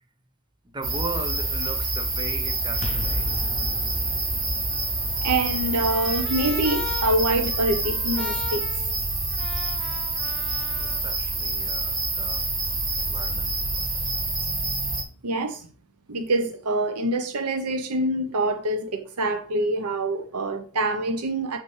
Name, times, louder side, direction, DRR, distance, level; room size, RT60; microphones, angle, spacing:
voice 1, 0.7-3.3 10.6-12.5 13.0-13.9, right 2 dB, 20° right, 0.7 m, -37 dB
sound 1, 0.8-15.0, right 2 dB, 40° right, 2.0 m, -27 dB
sound 2, 2.7-8.4, left 2 dB, 30° left, 0.5 m, -37 dB
Trumpet, 4.7-11.0, left 5 dB, 5° left, 1.0 m, -39 dB
voice 2, 5.2-8.6 15.2-15.7 16.1-21.6, right 2 dB, 85° right, 0.8 m, -25 dB
6.8 x 5.5 x 3.2 m
head